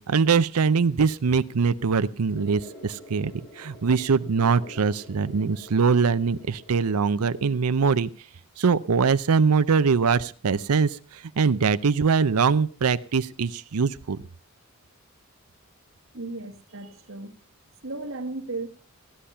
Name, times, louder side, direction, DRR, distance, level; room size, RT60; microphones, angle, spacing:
voice 1, 0.0-8.1 8.6-14.2, right 5 dB, 85° right, 13 dB, 0.6 m, -22 dB
sound 1, 2.3-7.3, left 1 dB, 80° left, 4.9 m, -47 dB
voice 2, 16.1-17.3 17.8-18.7, right 2 dB, 65° right, 6 dB, 1.6 m, -35 dB
15.5 x 10.0 x 5.6 m, 0.42 s
head